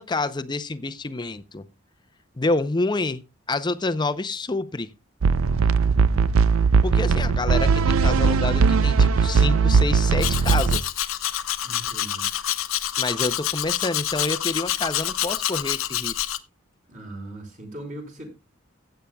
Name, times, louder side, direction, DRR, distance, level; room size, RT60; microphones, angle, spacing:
voice 1, 0.0-1.6 2.4-3.2 3.5-4.9 6.8-10.9 13.0-16.3, left 3 dB, 20° left, 0.6 m, -28 dB
sound 1, 5.2-10.8, right 5 dB, 85° right, 0.5 m, -19 dB
voice 2, 5.7-6.3 11.6-12.3 16.9-18.3, right 1 dB, 40° right, 4.2 m, -39 dB
Domestic sounds home sounds, 10.2-16.4, left 12 dB, 85° left, 0.7 m, -27 dB
15.5 x 9.1 x 2.3 m
head